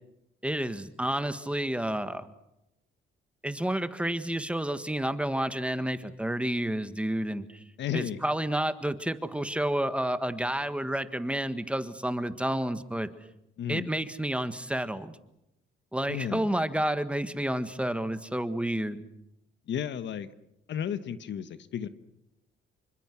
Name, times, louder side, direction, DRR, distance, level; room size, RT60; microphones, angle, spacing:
voice 1, 0.4-2.3 3.4-7.6 7.9-13.1 13.7-15.1 15.9-19.0, right 1 dB, 5° right, 10 dB, 1.6 m, -30 dB
voice 2, 7.8-8.2 13.6-13.9 16.1-16.5 19.7-20.3 20.7-21.9, left 9 dB, 65° left, 12 dB, 1.3 m, -33 dB
27.0 x 25.0 x 6.2 m, 0.85 s
cardioid pair, 90°, 20 cm